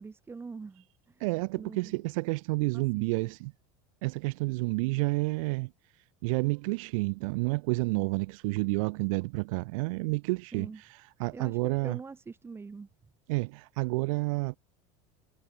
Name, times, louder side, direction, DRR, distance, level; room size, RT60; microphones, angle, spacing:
voice 1, 0.0-1.2 1.6-2.0 2.7-3.3 10.5-10.8 11.3-12.9, right 4 dB, 15° right, 3.8 m, -44 dB
voice 2, 1.2-3.5 4.0-5.7 6.2-12.0 13.3-14.6, right 25 dB, 75° right, 1.2 m, -30 dB
cardioid pair, 155°, 17 cm